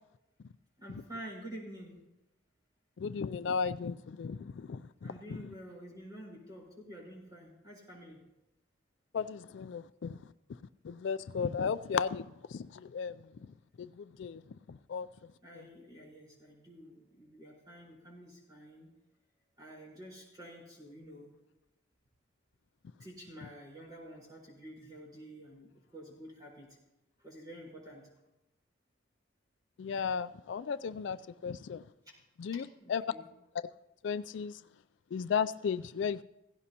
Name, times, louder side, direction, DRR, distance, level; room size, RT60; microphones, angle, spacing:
voice 1, 0.8-1.9 5.0-8.2 15.4-18.9 19.6-21.3 23.0-26.7 27.2-28.0 32.5-33.3, right 1 dB, 20° right, -3 dB, 4.5 m, -49 dB
voice 2, 3.0-5.1 9.1-10.2 10.8-14.4 14.7-15.1 15.6-15.7 29.8-31.8 32.4-33.0 34.0-34.6 35.1-36.2, left 6 dB, 65° left, 14 dB, 0.3 m, -35 dB
16.5 x 16.5 x 2.9 m, 0.94 s
head